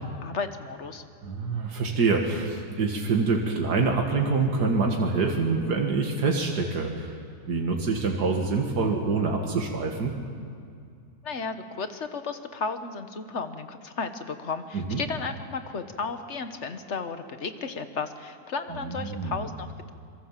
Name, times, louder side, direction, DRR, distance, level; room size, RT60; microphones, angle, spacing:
voice 1, 0.0-1.0 11.2-19.9, left 4 dB, 45° left, 9 dB, 1.5 m, -34 dB
voice 2, 1.2-7.1 7.5-10.1 14.7-15.0 18.8-19.4, right 4 dB, 80° right, 1 dB, 2.4 m, -26 dB
26.0 x 23.0 x 7.5 m, 2.3 s
omnidirectional pair, 1.7 m